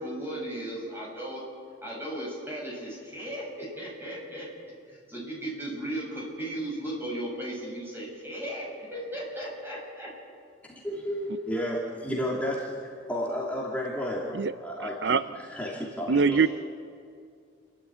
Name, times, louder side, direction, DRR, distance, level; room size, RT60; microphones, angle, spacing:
voice 1, 0.0-1.4 1.8-4.5 4.9-10.1, right 1 dB, 15° right, -3 dB, 6.9 m, -36 dB
voice 2, 10.8-16.4, equal, 10° left, -4 dB, 2.8 m, -32 dB
voice 3, 16.1-16.5, right 5 dB, 65° right, 13 dB, 0.5 m, -22 dB
29.0 x 12.5 x 8.8 m, 2.2 s
head